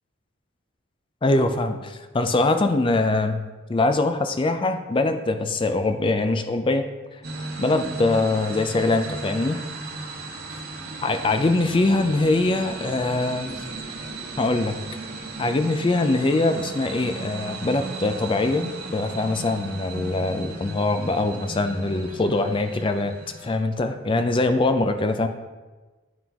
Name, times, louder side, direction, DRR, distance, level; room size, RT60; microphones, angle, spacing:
voice 1, 1.2-3.4 3.7-6.9 7.6-9.6 11.0-13.6 14.4-14.8 15.4-23.1 23.4-25.3, left 2 dB, 25° left, 8 dB, 0.4 m, -23 dB
sound 1, 7.2-23.6, right 3 dB, 50° right, 1.0 m, -36 dB
11.0 x 3.7 x 2.9 m, 1.2 s
head